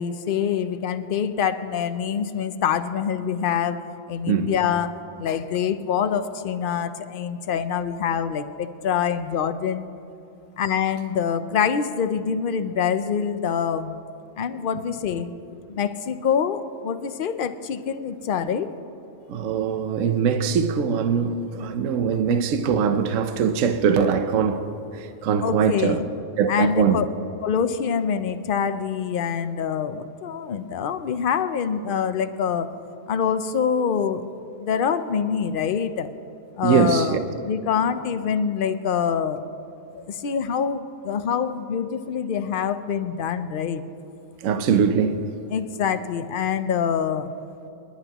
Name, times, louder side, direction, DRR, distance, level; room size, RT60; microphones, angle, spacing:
voice 1, 0.0-3.8 4.1-9.9 10.6-13.9 14.4-15.3 15.7-18.7 25.4-26.1 26.5-27.1 27.4-32.7 33.1-34.2 34.6-36.1 36.6-37.2 37.5-39.4 39.9-43.8 45.5-47.3, left 7 dB, 50° left, 0.7 m, -25 dB
voice 2, 19.3-24.6 24.9-26.0 26.4-27.0 36.6-37.2 44.4-45.2, right 6 dB, 70° right, 1.1 m, -22 dB
28.5 x 11.5 x 3.0 m
omnidirectional pair, 1.5 m